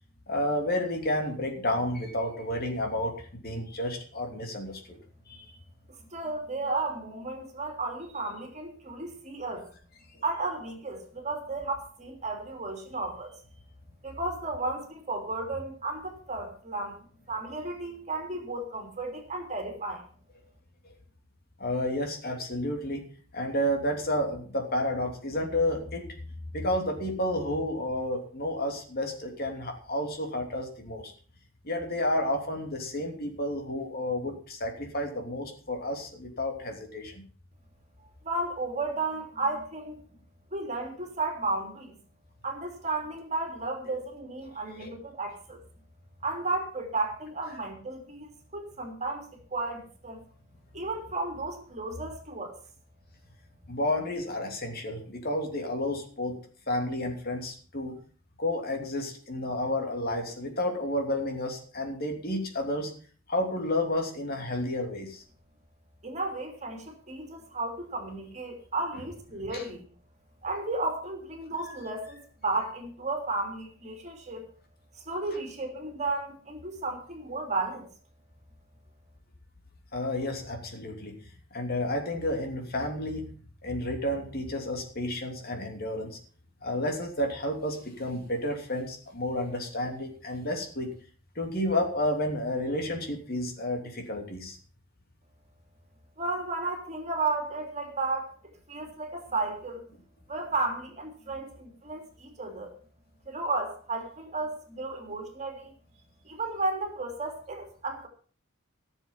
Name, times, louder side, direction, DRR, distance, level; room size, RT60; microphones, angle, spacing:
voice 1, 0.3-5.0 5.3-5.5 21.6-23.1 23.3-26.2 26.5-31.1 31.6-37.2 44.8-44.9 53.7-56.4 56.7-58.0 58.4-62.9 63.3-65.2 69.5-69.6 79.9-81.2 81.5-83.3 83.6-86.2 86.6-90.9 91.3-94.6, left 1 dB, 45° left, 4 dB, 3.0 m, -31 dB
voice 2, 6.1-9.7 10.2-13.3 14.0-17.0 17.3-20.0 38.2-40.0 40.5-41.9 42.4-45.6 46.2-50.2 50.7-52.6 66.0-69.9 70.4-74.5 75.0-77.9 96.2-98.3 98.7-100.0 100.3-102.7 103.3-105.7 106.2-108.1, right 3 dB, 35° right, 3 dB, 3.2 m, -33 dB
15.5 x 7.2 x 7.3 m, 0.42 s
head